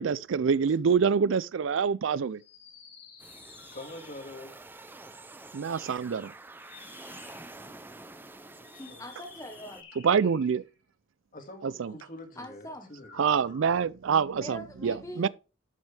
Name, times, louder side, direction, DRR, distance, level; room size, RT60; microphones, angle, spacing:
voice 1, 0.0-2.4 5.5-6.3 10.0-10.6 11.8-11.9 13.2-15.3, right 6 dB, 70° right, 0.4 m, -26 dB
sound 1, 2.3-4.5 6.5-7.6 8.6-10.8 12.8-13.7, left 5 dB, 70° left, 3.8 m, -52 dB
sound 2, 3.2-9.8, right 2 dB, 10° right, 0.5 m, -48 dB
voice 2, 3.7-4.7 7.6-7.8 8.5-9.1 11.3-13.4, left 2 dB, 45° left, 2.2 m, -46 dB
voice 3, 8.8-9.9 12.4-12.9 14.4-15.3, equal, 15° left, 1.0 m, -42 dB
12.0 x 6.2 x 3.3 m
head